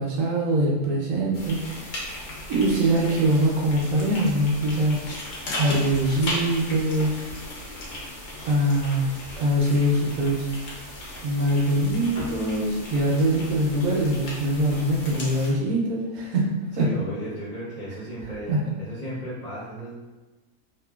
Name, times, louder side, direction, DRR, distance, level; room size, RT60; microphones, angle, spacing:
voice 1, 0.0-2.2 2.5-5.0 5.6-7.2 8.4-9.1 9.4-10.5 11.2-16.9 18.5-18.6, right 1 dB, 80° right, -3 dB, 1.1 m, -23 dB
sound 1, 1.3-15.5, left 1 dB, 90° left, 1.2 m, -36 dB
voice 2, 16.8-19.9, right 1 dB, 35° left, -9 dB, 1.0 m, -35 dB
3.1 x 2.2 x 2.3 m, 1.2 s
omnidirectional pair, 1.5 m